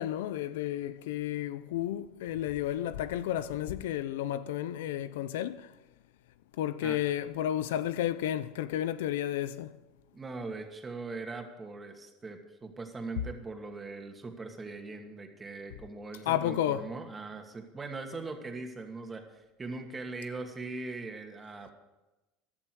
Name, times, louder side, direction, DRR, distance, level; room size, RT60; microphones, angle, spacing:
voice 1, 0.0-5.7 6.6-9.7 16.3-16.8, left 12 dB, 85° left, 0.6 m, -32 dB
voice 2, 10.1-21.7, right 3 dB, 20° right, 2.4 m, -41 dB
16.0 x 11.5 x 4.8 m
supercardioid pair, 100°, 0 cm